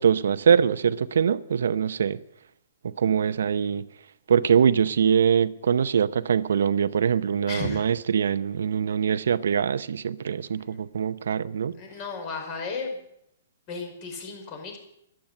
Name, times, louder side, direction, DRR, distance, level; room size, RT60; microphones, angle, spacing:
voice 1, 0.0-2.2 2.8-3.9 4.3-11.7, right 7 dB, 75° right, 0.7 m, -23 dB
voice 2, 7.5-7.9 11.8-13.0 13.7-14.8, left 4 dB, 35° left, 5.3 m, -34 dB
12.0 x 11.5 x 7.7 m
hypercardioid pair, 145°, 0 cm